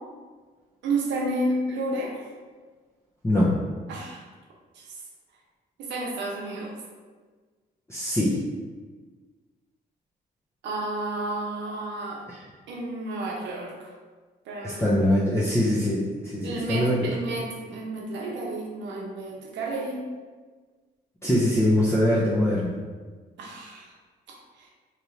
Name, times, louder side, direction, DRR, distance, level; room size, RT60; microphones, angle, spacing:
voice 1, 0.8-2.1 3.9-4.2 4.8-4.9 5.8-6.7 10.6-12.2 12.7-13.9 14.5-14.8 16.4-20.0 23.4-23.9 24.3-24.7, right 2 dB, 85° right, -1 dB, 0.7 m, -31 dB
voice 2, 3.2-3.6 7.9-8.4 12.3-12.4 14.6-17.1 21.2-22.7, left 1 dB, 15° left, -7 dB, 0.6 m, -23 dB
2.9 x 2.5 x 3.1 m, 1.4 s
cardioid pair, 70°, 18 cm